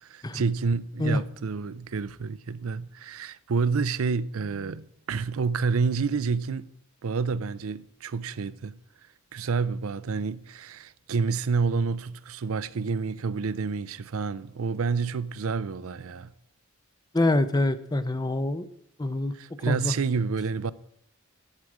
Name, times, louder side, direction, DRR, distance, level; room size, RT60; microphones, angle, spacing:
voice 1, 0.0-6.7 7.0-8.7 9.3-16.3 19.3-20.7, right 5 dB, 70° right, 0.5 m, -29 dB
voice 2, 17.1-18.7 19.0-19.3 19.7-19.9, left 2 dB, 20° left, 0.6 m, -25 dB
14.0 x 8.6 x 4.9 m
head